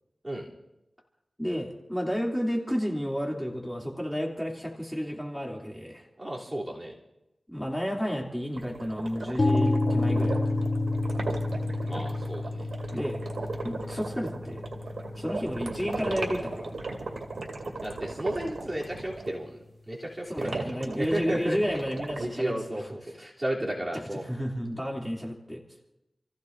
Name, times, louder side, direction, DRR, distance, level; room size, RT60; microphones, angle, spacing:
voice 1, 1.4-6.0 7.5-10.7 12.9-13.2 13.6-14.6 15.2-16.7 20.3-22.8 24.2-25.6, equal, 5° left, -2 dB, 2.9 m, -31 dB
voice 2, 6.2-6.9 11.8-12.7 17.8-19.6 19.9-20.6 21.0-21.6 22.2-24.2, right 1 dB, 25° right, -4 dB, 3.2 m, -33 dB
sound 1, 8.6-19.3 20.4-22.3, right 3 dB, 85° right, 2.6 m, -37 dB
sound 2, 9.4-17.3, left 2 dB, 40° left, 1.6 m, -30 dB
30.0 x 15.5 x 2.7 m, 0.90 s
wide cardioid pair, 70°, 0 cm